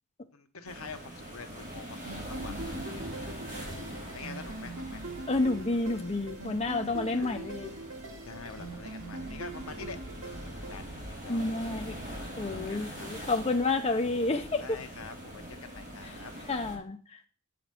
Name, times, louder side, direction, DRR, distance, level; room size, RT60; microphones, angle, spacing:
voice 1, 0.3-3.0 3.6-5.0 6.8-7.5 8.2-10.0 10.2-10.9 11.2-11.5 12.6-13.5 14.6-16.3, left 4 dB, 75° left, 1.1 m, -46 dB
sound 1, 0.7-16.8, equal, 40° right, 3.8 m, -43 dB
sound 2, 2.0-10.8, right 2 dB, 75° right, 2.1 m, -42 dB
voice 2, 5.3-7.7 11.3-11.9 12.4-14.6 16.5-17.0, left 3 dB, 30° left, 0.6 m, -29 dB
8.3 x 5.1 x 7.5 m
head